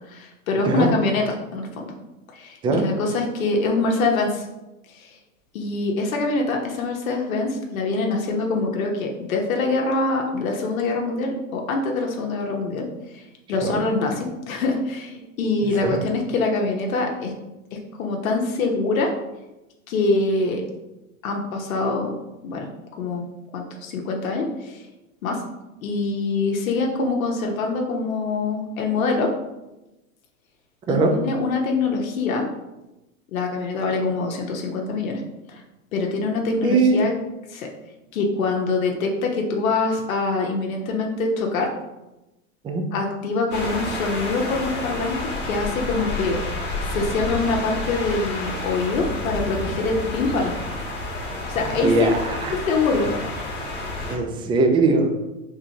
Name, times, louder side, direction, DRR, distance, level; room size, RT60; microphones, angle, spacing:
voice 1, 0.1-1.9 2.3-4.5 4.9-5.2 5.5-12.9 13.1-17.3 17.7-19.1 19.9-20.6 21.2-22.1 22.4-22.7 23.0-23.3 23.5-24.9 25.2-25.4 25.8-29.3 30.9-32.4 33.3-35.2 35.5-35.6 35.9-37.1 37.5-37.7 38.1-41.7 42.9-46.4 46.8-50.5 51.5-52.1 52.5-53.1, left 3 dB, 70° left, 1 dB, 1.0 m, -24 dB
voice 2, 36.6-37.0 42.6-42.8 51.8-52.6 54.1-55.1, right 3 dB, 15° right, 4 dB, 0.4 m, -20 dB
sound 1, 43.5-54.2, left 2 dB, 25° left, 1.4 m, -30 dB
4.9 x 3.7 x 2.8 m, 1.0 s
hypercardioid pair, 110°, 42 cm